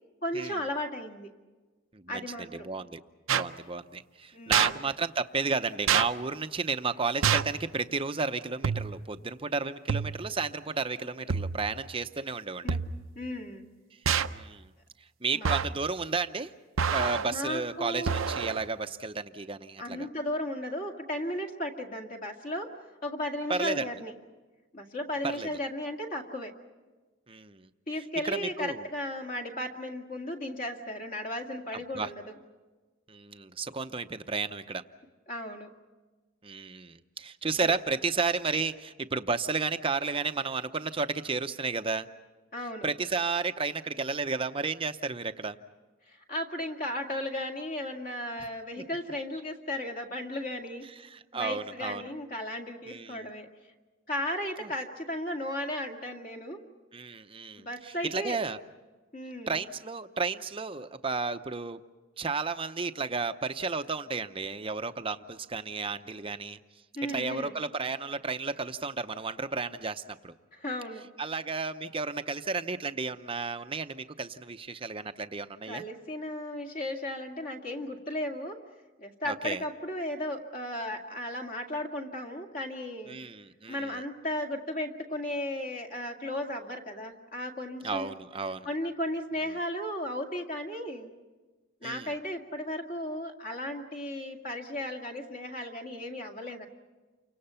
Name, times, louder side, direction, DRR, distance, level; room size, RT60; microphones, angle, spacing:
voice 1, 0.2-1.3 2.1-2.7 4.3-4.8 12.6-12.8 13.2-13.7 15.3-15.6 17.3-18.2 19.8-24.1 24.7-26.5 27.9-32.3 35.3-35.7 37.6-37.7 42.5-42.9 46.1-50.9 51.3-53.5 54.1-56.6 57.6-58.4 59.1-59.6 66.9-67.6 70.5-71.1 75.7-78.6 79.0-83.2 83.7-88.1 88.6-91.1 91.8-96.7, left 1 dB, 40° left, 2 dB, 2.1 m, -35 dB
voice 2, 1.9-3.0 3.3-12.8 14.3-14.7 15.2-16.5 16.9-20.1 23.5-23.8 25.2-25.5 27.3-27.7 28.2-28.8 31.9-32.1 33.1-34.8 36.4-42.1 42.8-45.6 51.0-52.0 52.9-53.3 54.6-54.7 56.9-58.6 59.5-61.8 62.2-66.6 67.1-70.3 71.2-75.8 79.3-79.6 83.1-84.0 87.8-88.7 91.8-92.1, right 4 dB, 25° right, 10 dB, 0.7 m, -32 dB
sound 1, 3.3-3.5 4.5-4.7 5.9-6.1 7.2-7.6 8.6-9.1 9.9-10.3 11.3-11.7 12.7-13.1 14.1-14.4 15.4-15.8 16.8-17.3 18.1-18.6, right 7 dB, 80° right, 0.7 m, -27 dB
29.5 x 25.0 x 5.7 m, 1.3 s
head